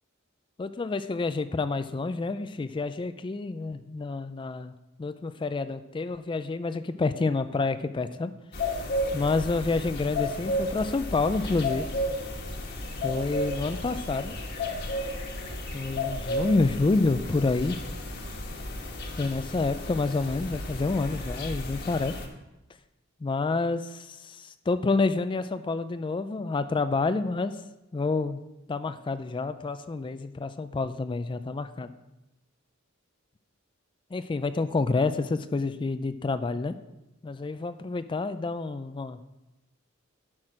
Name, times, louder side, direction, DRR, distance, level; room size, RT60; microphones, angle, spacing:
voice 1, 0.6-4.7 5.0-8.3 9.1-11.9 13.0-14.4 15.7-17.8 19.2-22.2 23.2-27.6 27.9-28.4 28.7-31.9 34.1-36.8 37.2-39.2, left 3 dB, 25° left, 11 dB, 0.3 m, -28 dB
sound 1, 8.5-22.3, left 1 dB, 55° left, 1.4 m, -33 dB
10.5 x 6.1 x 4.8 m, 0.97 s
head